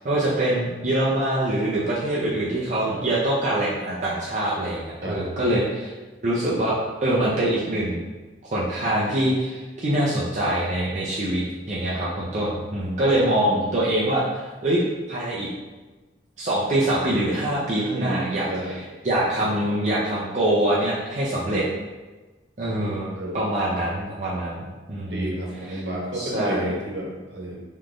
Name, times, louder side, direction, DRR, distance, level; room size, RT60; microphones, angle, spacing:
voice 1, 0.0-5.9 6.2-8.0 8.5-14.8 15.1-15.5 16.4-18.5 18.7-21.6 22.6-25.3 25.7-25.8 26.1-26.8, right 1 dB, 40° right, -7 dB, 0.6 m, -24 dB
voice 2, 13.4-13.7 17.9-18.8 19.4-19.5 21.5-21.7 23.1-23.4 25.1-27.6, right 1 dB, 70° right, -3 dB, 1.1 m, -31 dB
4.0 x 3.2 x 3.7 m, 1.2 s
head